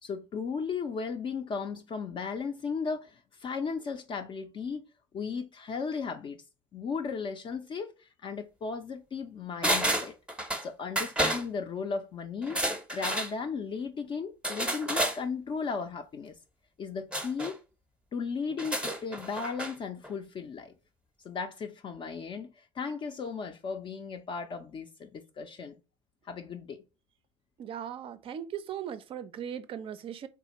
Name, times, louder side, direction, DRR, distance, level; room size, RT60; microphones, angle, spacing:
voice 1, 0.0-4.8 5.1-6.4 6.7-10.1 10.6-12.6 12.9-16.3 16.8-17.6 18.1-20.7 21.2-25.7 26.2-26.8, left 5 dB, 35° left, 0.4 m, -36 dB
sound 1, 9.6-10.7 11.0-11.4 12.4-13.3 14.4-15.2 17.1-17.5 18.5-19.7 20.0-20.1, right 1 dB, 5° right, 0.7 m, -30 dB
voice 2, 27.6-30.3, right 9 dB, 40° right, 0.4 m, -38 dB
3.4 x 2.3 x 2.9 m
figure-of-eight pair, 60°, 15 cm